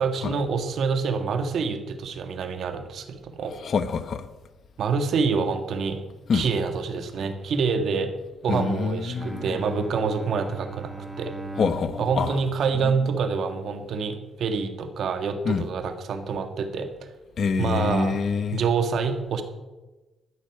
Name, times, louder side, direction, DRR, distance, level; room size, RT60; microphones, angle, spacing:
voice 1, 0.0-3.5 4.8-6.0 6.3-8.1 8.4-11.3 12.0-16.9 17.6-18.2 18.5-19.4, right 5 dB, 65° right, 1.8 m, -26 dB
voice 2, 3.4-4.3 6.3-6.4 8.5-9.6 11.6-12.4 12.8-13.0 15.4-15.7 17.4-18.6, left 5 dB, 55° left, 1.0 m, -26 dB
Bowed string instrument, 9.2-13.6, right 2 dB, 5° right, 1.5 m, -40 dB
13.5 x 6.4 x 9.0 m
supercardioid pair, 65°, 0 cm